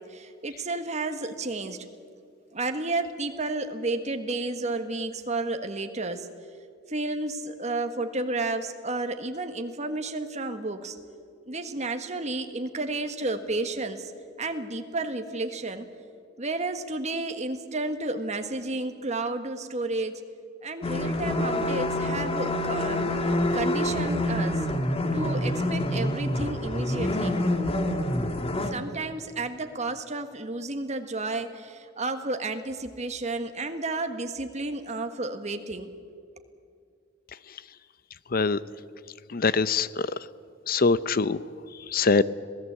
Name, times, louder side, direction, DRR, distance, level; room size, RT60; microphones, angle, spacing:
voice 1, 0.1-1.8 2.5-6.3 6.9-10.9 11.5-14.1 14.4-15.9 16.4-20.1 20.6-24.6 25.1-27.3 28.7-35.9, right 2 dB, 40° right, 7 dB, 1.7 m, -31 dB
sound 1, 20.8-28.7, left 1 dB, 30° left, 1.6 m, -27 dB
voice 2, 39.3-40.1 40.7-41.4 41.9-42.2, left 4 dB, 50° left, 17 dB, 0.7 m, -23 dB
26.5 x 17.5 x 8.2 m, 2.3 s
head